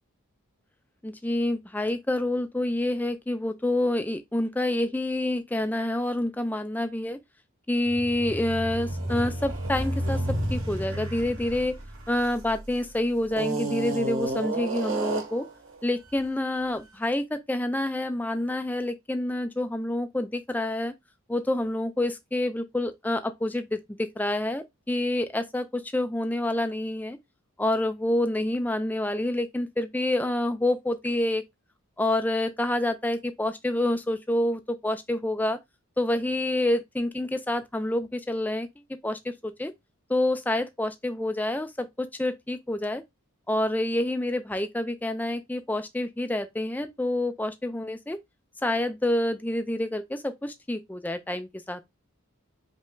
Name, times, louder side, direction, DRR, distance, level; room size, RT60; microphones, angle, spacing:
voice 1, 1.0-7.2 7.7-11.8 12.1-15.5 15.8-20.9 21.3-27.2 27.6-31.4 32.0-35.6 36.0-38.7 39.0-39.7 40.1-43.0 43.5-48.2 48.6-51.8, left 1 dB, 10° left, 0.4 m, -28 dB
sound 1, 7.9-12.7 13.3-15.5, right 1 dB, 60° right, 1.9 m, -31 dB
5.2 x 2.2 x 3.8 m
head